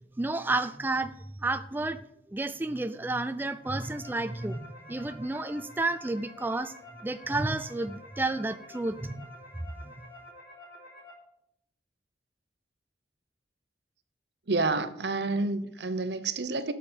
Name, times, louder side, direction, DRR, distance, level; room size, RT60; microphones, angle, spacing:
voice 1, 0.2-1.1 1.4-2.0 2.3-4.6 4.9-6.7 7.0-9.3 9.8-9.9, right 2 dB, 10° right, 0.3 m, -31 dB
sound 1, 3.4-11.1, left 1 dB, 70° left, 4.9 m, -50 dB
voice 2, 14.5-16.7, right 3 dB, 70° right, 0.9 m, -29 dB
8.7 x 7.3 x 8.0 m
head